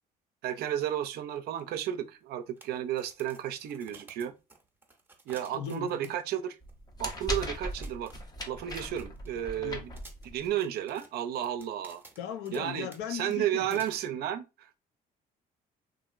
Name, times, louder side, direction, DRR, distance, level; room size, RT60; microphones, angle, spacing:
voice 1, 0.4-4.3 5.3-6.5 7.0-8.1 8.5-9.9 10.2-12.0 12.5-14.7, right 11 dB, 70° right, 0.5 m, -33 dB
sound 1, 1.6-1.7 1.9-2.0 2.6-6.4 6.7-6.8 7.1-7.3 7.7-9.5 10.0-12.6 12.9-13.0 13.3-13.9, right 3 dB, 10° right, 0.7 m, -54 dB
voice 2, 5.5-6.1 9.6-9.9 12.2-13.8, left 8 dB, 85° left, 0.5 m, -38 dB
sound 2, 6.6-10.6, equal, 25° left, 0.6 m, -38 dB
2.9 x 2.5 x 2.4 m
cardioid pair, 110°, 17 cm